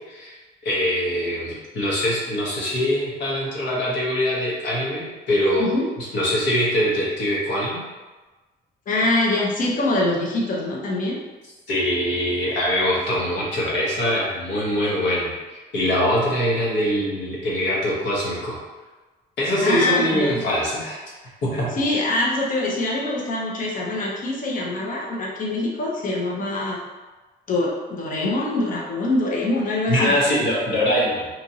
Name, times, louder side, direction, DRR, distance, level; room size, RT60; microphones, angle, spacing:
voice 1, 0.6-5.7 6.0-7.8 11.7-18.6 19.4-21.0 21.4-21.7 29.9-31.3, equal, 70° left, -5 dB, 1.0 m, -23 dB
voice 2, 8.9-11.2 19.6-20.3 21.7-26.8 27.5-30.1, left 2 dB, 45° left, -3 dB, 0.6 m, -24 dB
2.9 x 2.4 x 2.7 m, 1.2 s
cardioid pair, 130°, 19 cm